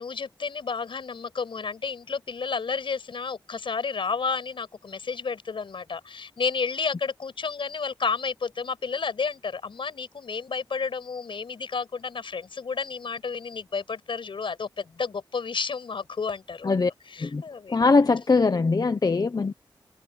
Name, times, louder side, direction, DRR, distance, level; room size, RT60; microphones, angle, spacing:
voice 1, 0.0-16.8 17.0-17.8, left 5 dB, 80° left, 6.7 m, -31 dB
voice 2, 17.7-19.5, left 4 dB, 50° left, 1.0 m, -21 dB
wide cardioid pair, 65°, 9 cm